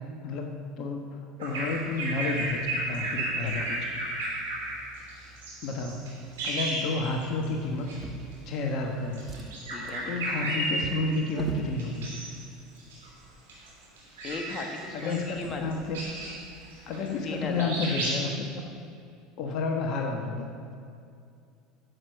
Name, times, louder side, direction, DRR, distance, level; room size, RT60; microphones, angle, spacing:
voice 1, 0.2-4.0 5.6-6.0 6.4-7.9 8.5-9.2 9.8-12.1 14.9-16.0 16.9-18.6 19.4-20.5, left 3 dB, 55° left, 1 dB, 1.3 m, -31 dB
Bird vocalization bird call bird song, 1.4-7.5 7.8-8.0 9.0-11.3 11.8-12.4 12.8-17.3 17.6-18.2, right 1 dB, 80° right, 3.1 m, -33 dB
Drawer open or close, 7.8-8.8 9.1-11.7 12.6-12.8 13.2-13.3, right 3 dB, 30° right, 1.4 m, -41 dB
voice 2, 9.7-10.1 14.2-15.6 17.2-17.7, left 4 dB, 35° left, 3 dB, 1.4 m, -36 dB
11.0 x 8.0 x 6.7 m, 2.4 s
hypercardioid pair, 75°, 0 cm